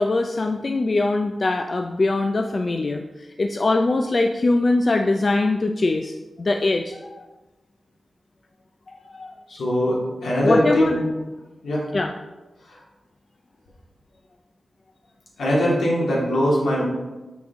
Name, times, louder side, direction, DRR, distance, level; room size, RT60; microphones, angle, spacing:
voice 1, 0.0-3.0 3.4-7.2 9.1-9.3 10.4-11.0 11.9-12.1, left 2 dB, 40° left, 4 dB, 0.4 m, -22 dB
voice 2, 9.5-11.0 11.6-11.8 12.7-12.8 15.4-16.8, equal, 90° left, -5 dB, 2.6 m, -21 dB
7.2 x 6.1 x 3.6 m, 1.1 s
wide cardioid pair, 125°, 0 cm